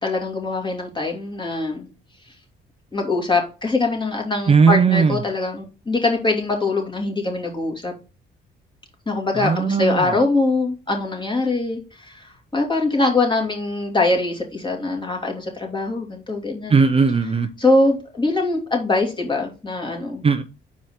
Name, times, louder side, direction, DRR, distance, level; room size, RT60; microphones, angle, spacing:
voice 1, 0.0-1.9 2.9-7.9 9.1-16.7 17.6-20.2, left 2 dB, 25° left, 1 dB, 2.7 m, -22 dB
voice 2, 4.5-5.2 9.4-10.2 16.7-17.5 20.2-20.4, right 5 dB, 30° right, 8 dB, 0.6 m, -17 dB
6.2 x 4.7 x 4.3 m, 0.31 s
cardioid pair, 90°, 20 cm